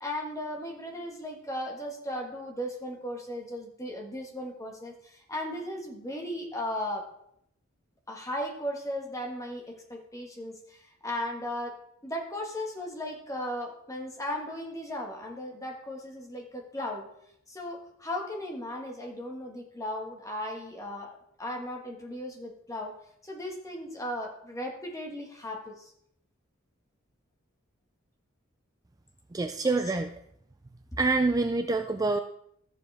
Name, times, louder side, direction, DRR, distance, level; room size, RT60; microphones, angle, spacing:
voice 1, 0.0-7.1 8.1-11.8 12.0-17.1 17.5-22.9 23.2-25.9 29.6-30.0 30.9-31.0, left 1 dB, 15° left, 1 dB, 1.6 m, -36 dB
voice 2, 29.3-30.1 31.0-32.2, right 3 dB, 15° right, 7 dB, 0.3 m, -26 dB
13.5 x 7.3 x 3.5 m, 0.74 s
head